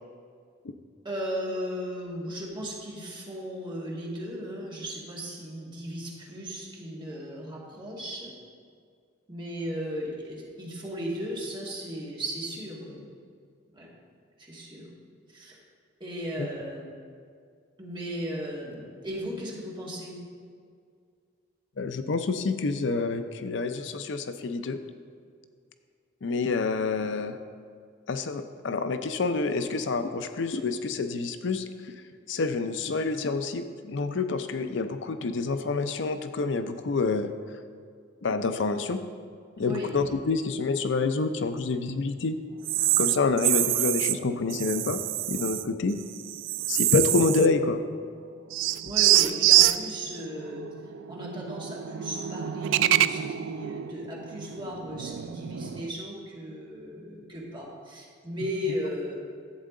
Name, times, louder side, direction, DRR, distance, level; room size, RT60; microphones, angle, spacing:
voice 1, 1.0-8.3 9.3-13.0 13.7-13.9 14.4-14.9 15.3-15.6 16.0-16.9 17.8-20.2 39.6-39.9 46.6-46.7 48.8-50.6 51.1-59.2, equal, 25° right, -4 dB, 2.0 m, -36 dB
voice 2, 21.8-24.8 26.2-27.4 28.1-31.6 32.3-37.3 38.2-39.0 39.6-42.4 43.0-45.0 45.3-46.0 46.7-47.8, left 4 dB, 70° left, 9 dB, 0.5 m, -27 dB
sound 1, 42.6-44.2 44.5-45.6 46.0-47.6 47.9-48.0 48.5-55.9, right 14 dB, 75° right, 0.3 m, -26 dB
11.5 x 8.2 x 3.8 m, 2.2 s
head